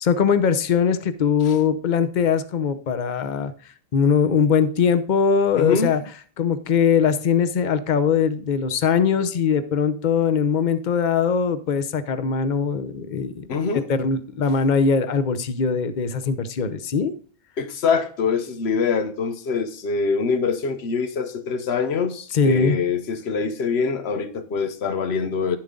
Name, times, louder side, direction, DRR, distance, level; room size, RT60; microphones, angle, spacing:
voice 1, 0.0-3.5 3.9-6.0 6.4-13.5 13.9-17.1 22.3-22.8, left 6 dB, 50° left, 0.9 m, -21 dB
voice 2, 5.6-6.0 13.5-13.9 17.6-25.6, left 5 dB, 85° left, 1.1 m, -24 dB
11.0 x 7.4 x 3.8 m
omnidirectional pair, 1.0 m